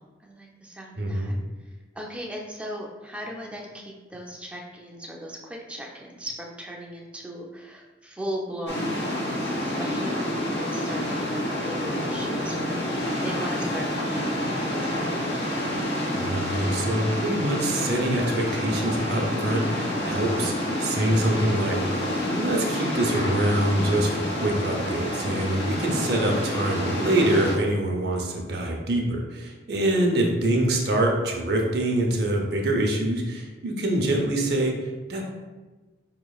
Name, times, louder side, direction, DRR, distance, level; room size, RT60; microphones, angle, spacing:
voice 1, 0.0-1.4 2.0-15.0, equal, 5° right, -1 dB, 0.4 m, -38 dB
voice 2, 1.0-1.4 16.1-20.5 20.8-21.8 22.2-34.8 35.1-35.2, right 1 dB, 65° right, 1 dB, 0.6 m, -25 dB
sound 1, 8.7-27.6, left 1 dB, 85° left, 0.8 m, -28 dB
4.9 x 3.0 x 2.3 m, 1.2 s
head